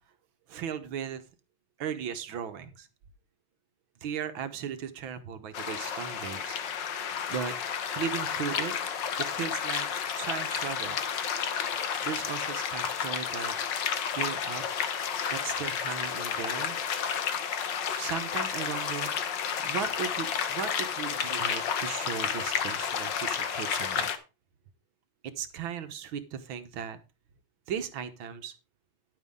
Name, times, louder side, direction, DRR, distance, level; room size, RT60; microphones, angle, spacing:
voice 1, 0.5-1.2 1.8-2.9 4.0-6.6 7.3-7.5 7.9-8.7 9.3-9.9 10.2-11.0 12.0-13.8 14.2-14.7 15.3-16.8 18.0-19.1 19.6-24.1 25.4-27.0 27.7-28.5, right 8 dB, 65° right, 10 dB, 1.8 m, -36 dB
sound 1, 5.5-24.2, left 7 dB, 60° left, 1.6 m, -31 dB
10.5 x 9.4 x 3.7 m, 0.30 s
omnidirectional pair, 2.4 m